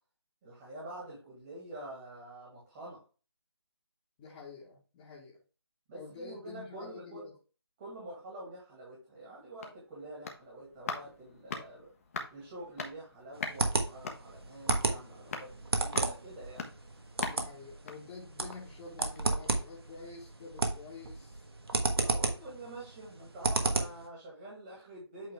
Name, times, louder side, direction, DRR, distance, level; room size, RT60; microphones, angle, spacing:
voice 1, 0.4-3.0 5.9-7.3 7.8-11.9 12.3-16.7 22.0-25.3, right 1 dB, 20° right, -4 dB, 2.2 m, -47 dB
voice 2, 4.2-5.4 5.9-7.3 17.3-21.5, left 4 dB, 15° left, -7 dB, 1.4 m, -48 dB
sound 1, 9.4-18.8 19.1-19.2, left 4 dB, 35° left, 1.1 m, -43 dB
sound 2, 13.4-24.1, right 3 dB, 65° right, 1.4 m, -33 dB
8.3 x 3.6 x 3.5 m, 0.34 s
figure-of-eight pair, 160°, 14 cm